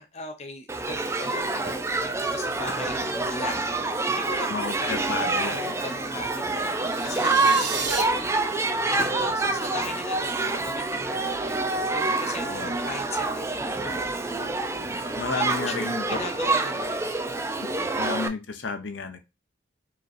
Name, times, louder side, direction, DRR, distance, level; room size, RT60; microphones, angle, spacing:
voice 1, 0.0-3.6 4.1-11.6 11.9-15.2 15.6-17.6, left 3 dB, 35° left, 4 dB, 0.7 m, -39 dB
Shout / Human group actions, 0.7-18.3, right 3 dB, 15° right, 0.4 m, -27 dB
voice 2, 4.5-5.8 7.2-7.4 12.3-12.8 15.1-16.2 17.8-19.2, left 4 dB, 75° left, 6 dB, 0.8 m, -32 dB
sound 1, 6.8-8.0, right 4 dB, 75° right, 1.4 m, -31 dB
5.0 x 3.0 x 2.5 m, 0.25 s
head